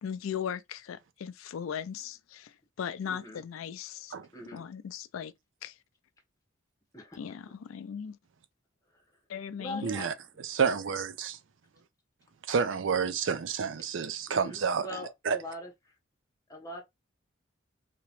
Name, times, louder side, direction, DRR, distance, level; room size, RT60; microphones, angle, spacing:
voice 1, 0.0-4.1 4.5-5.3 5.6-5.7 7.2-8.2 9.3-9.9, left 8 dB, 90° left, 0.4 m, -38 dB
voice 2, 3.1-3.4 4.3-4.6 6.9-7.4 8.9-9.0 9.6-10.1 13.0-13.2 14.3-15.9 16.5-16.8, left 1 dB, 15° left, 1.1 m, -42 dB
voice 3, 9.8-10.1 10.4-11.4 12.5-14.9 15.3-15.4, right 6 dB, 65° right, 0.5 m, -29 dB
2.9 x 2.9 x 3.0 m
head